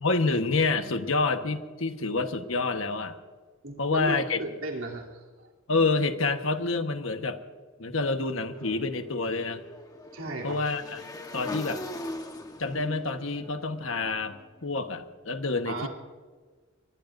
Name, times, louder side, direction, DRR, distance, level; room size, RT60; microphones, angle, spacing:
voice 1, 0.0-3.2 3.8-4.4 5.7-7.4 7.8-9.6 10.4-11.0 11.3-11.8 12.6-15.9, left 3 dB, 70° left, 7 dB, 1.3 m, -28 dB
voice 2, 3.6-5.5 10.1-10.6 15.6-15.9, right 1 dB, 80° right, 0 dB, 3.1 m, -35 dB
Motorcycle / Engine, 8.5-14.7, left 1 dB, 20° left, 1.2 m, -41 dB
25.0 x 21.5 x 2.6 m, 1.4 s
head